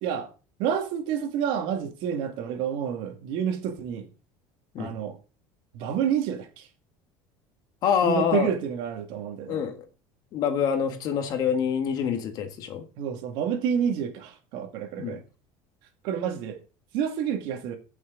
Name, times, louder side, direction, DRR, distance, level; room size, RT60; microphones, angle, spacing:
voice 1, 0.6-4.1 4.8-5.2 5.7-6.7 8.0-9.6 13.0-15.2 16.0-16.6 16.9-17.8, right 8 dB, 60° right, 2.2 m, -29 dB
voice 2, 7.8-8.5 9.5-9.8 10.3-12.9 15.0-15.2, left 7 dB, 45° left, 1.6 m, -26 dB
15.5 x 6.3 x 3.9 m
cardioid pair, 165°, 10 cm